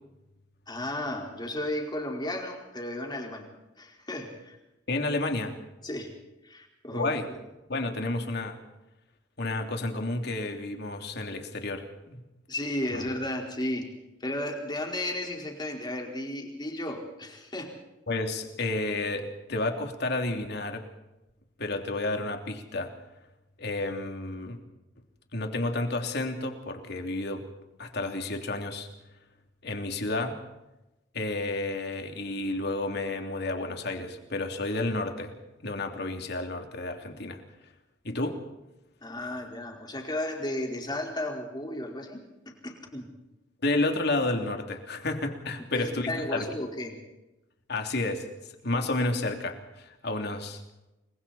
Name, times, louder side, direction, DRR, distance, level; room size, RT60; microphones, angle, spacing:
voice 1, 0.7-3.4 3.8-4.6 5.8-6.1 6.4-7.4 12.5-13.9 14.2-17.7 39.0-42.2 42.4-43.1 45.7-47.0, left 1 dB, 25° left, 1 dB, 4.8 m, -34 dB
voice 2, 4.9-5.5 6.9-7.3 7.7-8.6 9.4-12.2 12.9-13.0 18.1-20.9 21.6-22.9 23.6-24.6 25.3-27.4 27.8-28.9 29.6-30.4 31.1-35.3 35.6-37.4 38.0-38.4 43.6-46.5 47.7-48.3 48.6-50.6, left 2 dB, 60° left, 4 dB, 3.2 m, -31 dB
29.0 x 22.5 x 4.4 m, 0.98 s
head